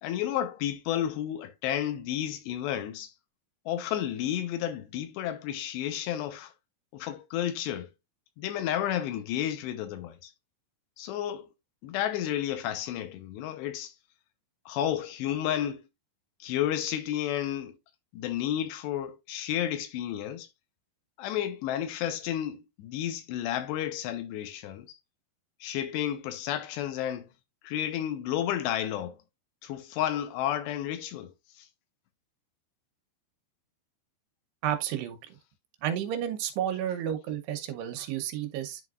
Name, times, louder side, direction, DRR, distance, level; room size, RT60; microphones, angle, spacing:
voice 1, 0.0-3.1 3.7-6.5 6.9-7.9 8.4-10.3 11.0-11.5 11.8-13.9 14.7-15.8 16.4-17.8 18.1-20.5 21.2-25.0 25.6-27.3 27.6-29.2 29.6-31.3 31.6-31.7, left 11 dB, 80° left, 2.9 m, -31 dB
voice 2, 34.6-35.2 35.8-38.8, right 10 dB, 75° right, 2.9 m, -31 dB
11.0 x 3.9 x 2.4 m
omnidirectional pair, 5.0 m